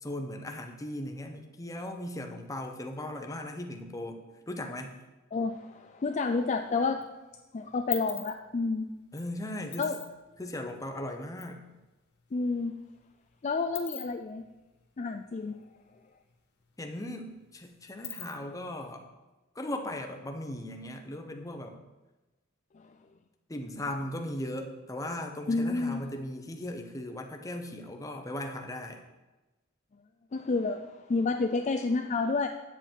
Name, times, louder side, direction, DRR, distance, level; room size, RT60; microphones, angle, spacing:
voice 1, 0.0-4.9 9.1-9.9 10.4-11.6 16.8-19.1 19.5-21.8 23.5-29.0, left 1 dB, 15° left, 4 dB, 0.8 m, -38 dB
voice 2, 5.3-7.0 7.5-8.9 9.8-10.0 12.3-12.7 13.4-14.4 15.0-15.6 22.7-22.9 25.5-26.0 30.3-32.5, left 3 dB, 35° left, 5 dB, 0.4 m, -30 dB
sound 1, 6.2-7.0 7.3-11.5 11.8-11.9 12.2-16.0 16.3-16.4 16.7-18.7, left 11 dB, 55° left, 1.5 m, -43 dB
8.9 x 7.8 x 4.5 m, 1.1 s
head